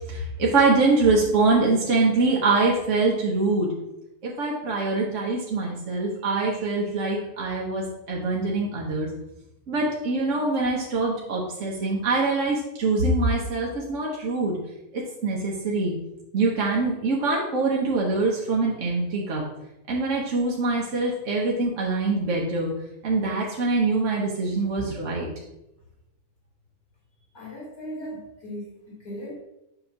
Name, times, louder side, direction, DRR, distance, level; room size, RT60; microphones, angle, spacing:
voice 1, 0.1-3.7 4.2-9.1 9.7-14.5 14.9-15.9 16.3-19.4 19.9-22.7 23.0-25.3, right 3 dB, 55° right, -2 dB, 1.3 m, -24 dB
voice 2, 27.3-29.4, equal, 30° left, -6 dB, 2.3 m, -38 dB
7.9 x 3.0 x 5.7 m, 0.90 s
omnidirectional pair, 1.6 m